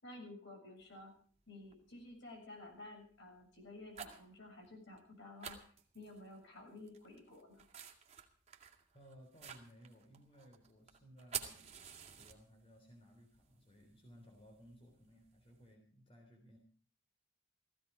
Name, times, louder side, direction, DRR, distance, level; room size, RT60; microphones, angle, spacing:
voice 1, 0.0-1.1 1.5-5.6 5.9-7.6, left 2 dB, 65° left, 1 dB, 7.0 m, -53 dB
sound 1, 0.8-0.9 1.7-2.0 2.5-2.8 3.5-4.3 4.6-4.7 5.0-5.1 5.4-6.4 6.8-12.8 13.1-15.6, right 8 dB, 35° right, 2.2 m, -49 dB
voice 2, 8.9-11.6 12.1-16.6, equal, 30° left, 2 dB, 3.6 m, -60 dB
16.5 x 15.5 x 4.9 m, 0.44 s
head